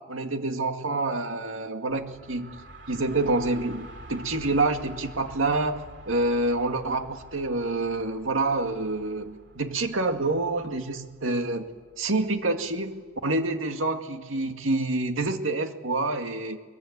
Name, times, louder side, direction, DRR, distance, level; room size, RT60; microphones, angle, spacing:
voice 1, 0.1-2.6 2.9-11.7 12.0-16.6, right 2 dB, 85° right, 6 dB, 2.1 m, -27 dB
sound 1, 1.9-13.6, right 1 dB, 60° right, 2.7 m, -48 dB
23.5 x 22.5 x 9.6 m, 1.4 s
head